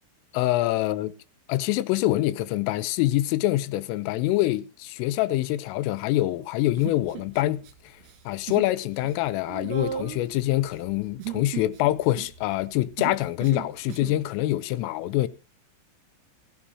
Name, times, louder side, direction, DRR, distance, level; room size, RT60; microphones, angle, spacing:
voice 1, 0.3-1.1 1.5-7.7 8.3-15.3, left 16 dB, 80° left, 3.3 m, -25 dB
Human voice, 6.8-7.7 8.0-8.7 9.0-14.2, right 10 dB, 60° right, 2.6 m, -37 dB
15.5 x 14.5 x 2.7 m
omnidirectional pair, 5.9 m